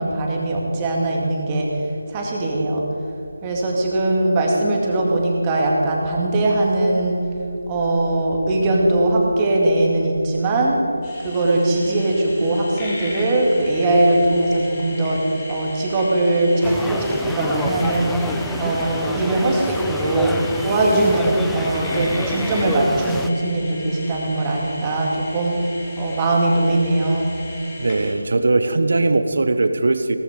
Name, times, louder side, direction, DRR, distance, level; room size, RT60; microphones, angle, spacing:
voice 1, 0.0-2.9 3.4-7.2 7.7-10.8 11.2-15.2 15.5-18.2 18.6-20.4 20.6-25.6 26.0-27.3, right 2 dB, 20° right, -2 dB, 2.3 m, -20 dB
sound 1, 11.0-28.1, left 2 dB, 20° left, 3.7 m, -37 dB
sound 2, 16.6-23.3, left 2 dB, ahead, 0.4 m, -29 dB
voice 2, 27.8-30.2, right 2 dB, 60° right, 10 dB, 1.1 m, -19 dB
17.0 x 14.0 x 5.2 m, 2.5 s
figure-of-eight pair, 160°, 0 cm